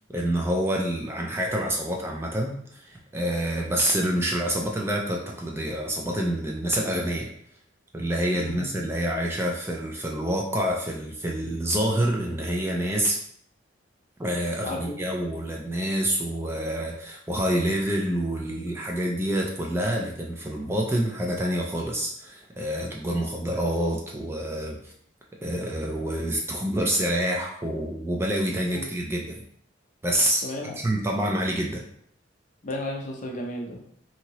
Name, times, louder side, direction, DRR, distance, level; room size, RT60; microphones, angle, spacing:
voice 1, 0.1-7.3 7.9-13.2 14.2-24.9 25.4-29.4 30.0-30.4 30.8-31.8, right 1 dB, 15° right, -1 dB, 0.3 m, -27 dB
voice 2, 8.3-8.8 14.6-15.0 28.7-28.9 30.4-30.8 32.6-33.8, left 1 dB, 40° left, -1 dB, 0.6 m, -34 dB
2.8 x 2.7 x 2.8 m, 0.66 s
head